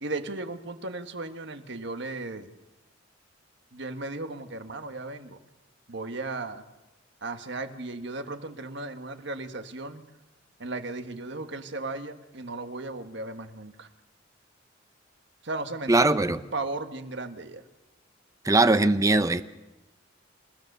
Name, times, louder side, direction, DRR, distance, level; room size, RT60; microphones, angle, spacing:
voice 1, 0.0-2.5 3.7-5.4 5.9-6.6 7.2-10.0 10.6-13.9 15.4-17.6, right 2 dB, 60° right, 8 dB, 1.5 m, -36 dB
voice 2, 15.9-16.4 18.4-19.4, right 2 dB, 15° right, 12 dB, 0.6 m, -20 dB
28.0 x 16.0 x 6.7 m, 1.1 s
head